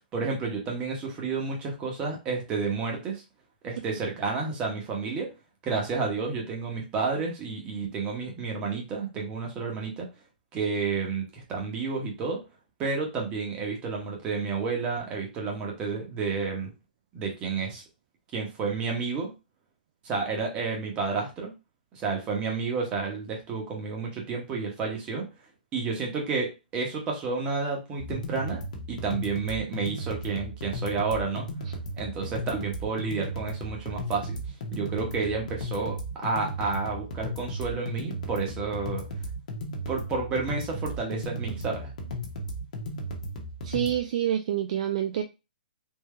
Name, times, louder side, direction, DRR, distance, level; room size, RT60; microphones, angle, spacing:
voice 1, 0.1-3.2 3.6-5.3 5.6-10.1 10.5-12.4 12.8-16.7 17.1-17.8 18.3-19.3 20.0-21.5 21.9-25.3 25.7-28.6 28.9-31.5 32.0-34.4 34.7-39.0 39.9-41.9, right 4 dB, 15° right, 0 dB, 1.0 m, -30 dB
sound 1, 28.0-44.0, equal, 50° left, 1.0 m, -35 dB
voice 2, 43.6-45.2, right 11 dB, 40° right, 6 dB, 0.3 m, -27 dB
3.6 x 2.7 x 3.2 m, 0.27 s
hypercardioid pair, 165°, 5 cm